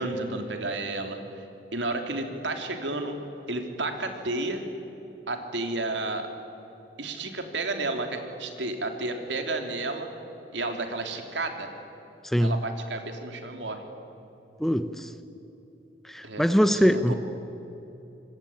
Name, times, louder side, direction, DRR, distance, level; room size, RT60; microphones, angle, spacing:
voice 1, 0.0-1.5 1.7-3.2 3.5-4.6 5.3-6.3 7.0-10.1 10.5-11.7 12.4-13.9 16.2-16.4 16.7-17.2, right 2 dB, 80° right, 5 dB, 3.3 m, -31 dB
voice 2, 12.2-12.6 14.6-15.1 16.0-17.1, equal, ahead, 10 dB, 0.9 m, -23 dB
26.5 x 23.5 x 8.9 m, 2.9 s
head